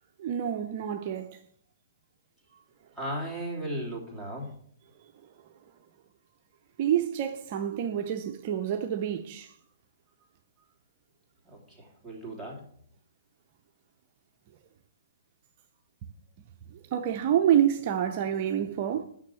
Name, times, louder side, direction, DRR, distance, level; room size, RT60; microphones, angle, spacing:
voice 1, 0.2-1.4 6.8-9.6 16.7-19.0, right 10 dB, 45° right, 0.7 m, -27 dB
voice 2, 2.9-4.5 11.4-12.7, right 1 dB, 5° left, 3.2 m, -36 dB
6.5 x 6.3 x 7.1 m
hypercardioid pair, 125°, 0 cm